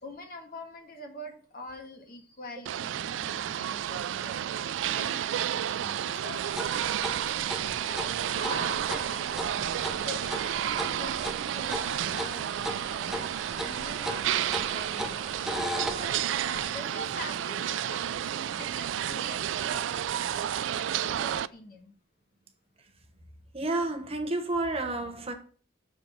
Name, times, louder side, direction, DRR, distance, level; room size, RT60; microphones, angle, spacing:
voice 1, 0.0-4.4 4.9-6.4 7.8-9.3 9.6-15.2 15.8-18.0 18.6-19.9 20.7-21.9, left 2 dB, 50° left, 1.5 m, -44 dB
sound 1, 2.7-21.5, right 10 dB, 90° right, 0.3 m, -31 dB
sound 2, 5.5-18.9, right 1 dB, 55° right, 1.1 m, -54 dB
sound 3, 6.5-16.7, equal, ahead, 0.7 m, -38 dB
voice 2, 23.5-25.3, right 2 dB, 30° right, 1.0 m, -30 dB
6.6 x 4.2 x 6.4 m
head